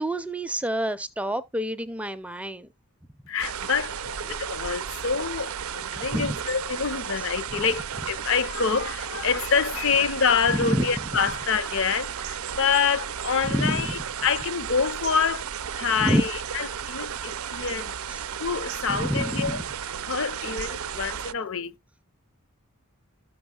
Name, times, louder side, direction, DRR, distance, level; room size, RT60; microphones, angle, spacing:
voice 1, 0.0-2.7 6.1-6.4 7.2-7.3 10.5-10.8 13.4-14.0 16.0-16.2 18.1-18.3 18.9-19.7, equal, 5° right, 0.4 m, -27 dB
voice 2, 3.3-15.5 15.8-17.9 18.4-19.6 20.1-21.7, left 6 dB, 60° left, 0.6 m, -26 dB
sound 1, 3.4-21.3, right 8 dB, 75° right, 0.5 m, -34 dB
13.0 x 6.2 x 2.3 m
head